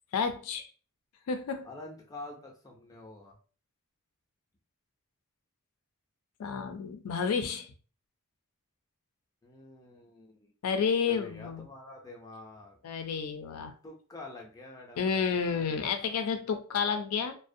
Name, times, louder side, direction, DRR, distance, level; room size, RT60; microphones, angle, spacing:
voice 1, 0.1-0.7 1.3-1.7 6.4-7.7 10.6-11.7 12.8-13.7 15.0-17.4, left 6 dB, 80° left, 7 dB, 0.4 m, -30 dB
voice 2, 1.6-3.4 9.4-10.5 11.1-12.8 13.8-16.2, left 2 dB, 15° left, -1 dB, 0.5 m, -47 dB
2.4 x 2.1 x 2.6 m, 0.39 s
head